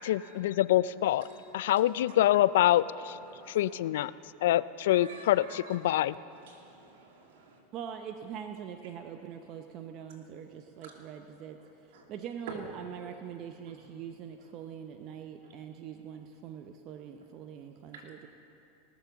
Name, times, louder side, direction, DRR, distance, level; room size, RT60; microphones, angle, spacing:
voice 1, 0.0-1.3 1.5-3.2 3.5-4.1 4.4-6.1, left 13 dB, 75° left, 18 dB, 0.3 m, -25 dB
voice 2, 1.2-1.5 3.0-3.9 4.9-5.8 6.3-7.6 10.1-10.2 10.8-11.0 11.6-12.1 12.5-12.6 13.7-13.8 17.9-18.1, right 4 dB, 75° right, 0 dB, 2.5 m, -50 dB
voice 3, 7.7-11.6 11.8-18.3, right 8 dB, 45° right, 6 dB, 0.7 m, -43 dB
18.5 x 6.9 x 7.1 m, 2.8 s
hypercardioid pair, 115°, 0 cm